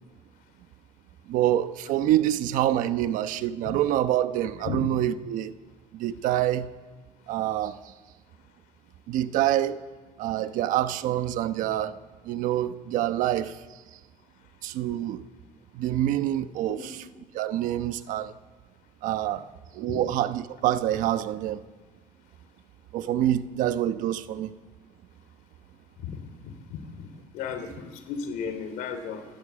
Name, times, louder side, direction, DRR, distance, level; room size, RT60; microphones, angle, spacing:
voice 1, 1.3-5.5 5.9-6.7 7.3-7.8 9.1-9.8 10.2-12.0 12.2-13.6 14.6-15.3 15.7-17.0 17.3-18.3 19.0-19.4 19.7-21.6 22.9-24.5, right 12 dB, 75° right, 1.1 m, -26 dB
voice 2, 26.4-27.1 27.3-29.2, left 6 dB, 90° left, 3.3 m, -35 dB
28.0 x 12.0 x 8.7 m
cardioid pair, 140°, 14 cm